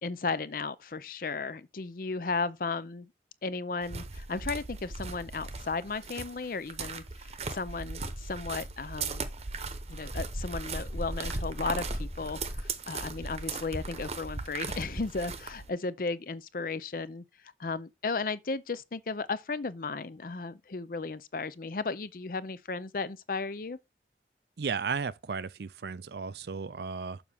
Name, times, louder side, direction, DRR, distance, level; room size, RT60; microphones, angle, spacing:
voice 1, 0.0-3.1 3.4-7.0 7.5-9.3 9.9-17.2 17.6-23.8, left 4 dB, 50° left, 0.6 m, -35 dB
sound 1, 3.8-15.7, right 4 dB, 35° right, 0.9 m, -38 dB
sound 2, 9.8-13.2 13.5-14.8 15.1-15.6, equal, 10° left, 0.8 m, -39 dB
voice 2, 24.6-27.2, right 5 dB, 70° right, 0.5 m, -34 dB
7.0 x 6.1 x 3.5 m
head